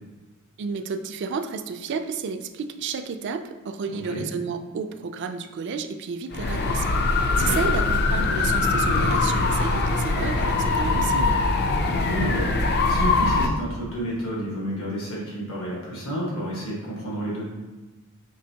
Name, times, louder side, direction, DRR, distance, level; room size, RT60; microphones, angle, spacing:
voice 1, 0.6-11.4, right 5 dB, 55° right, 8 dB, 0.3 m, -31 dB
sound 1, 6.3-13.5, left 3 dB, 50° left, 0.4 m, -22 dB
voice 2, 11.8-12.5 12.8-17.5, equal, 80° left, -5 dB, 1.3 m, -30 dB
5.3 x 3.4 x 2.8 m, 1.2 s
head